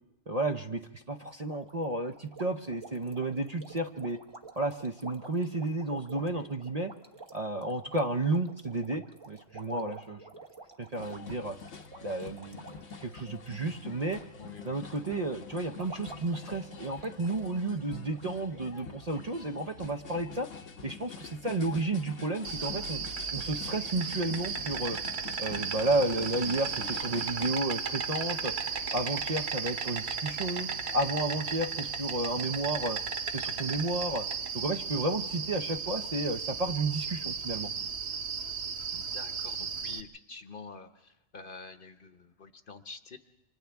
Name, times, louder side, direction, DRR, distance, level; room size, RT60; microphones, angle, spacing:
voice 1, 0.3-4.2 4.6-6.9 7.3-10.2 10.8-11.6 12.0-12.6 13.0-14.2 14.6-20.5 20.8-23.0 23.3-25.0 25.4-28.5 28.9-33.0 33.3-34.3 34.5-37.7, right 2 dB, 35° right, 4 dB, 0.7 m, -32 dB
sound 1, 1.5-14.3 14.5-15.0 15.5-17.4 17.7-17.8 18.2-18.3 18.8-18.9 19.1-19.3, right 3 dB, 20° right, 1.2 m, -50 dB
voice 2, 6.2-6.5 14.4-14.8 38.9-43.2, left 4 dB, 45° left, 8 dB, 1.1 m, -47 dB
sound 2, 11.0-27.5, left 5 dB, 80° left, 1.3 m, -46 dB
Insect, 22.4-40.0, right 6 dB, 60° right, 1.2 m, -35 dB
29.0 x 26.0 x 3.5 m, 0.96 s
omnidirectional pair, 1.3 m